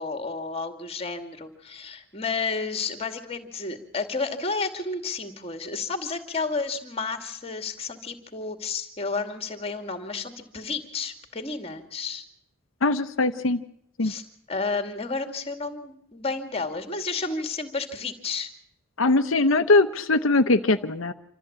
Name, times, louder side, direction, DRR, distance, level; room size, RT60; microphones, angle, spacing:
voice 1, 0.0-12.2 14.0-14.2 14.5-18.5, left 4 dB, 30° left, 7 dB, 2.4 m, -31 dB
voice 2, 12.8-13.6 14.0-14.1 19.0-21.1, left 2 dB, 80° left, 8 dB, 0.8 m, -21 dB
27.0 x 13.5 x 8.8 m, 0.71 s
head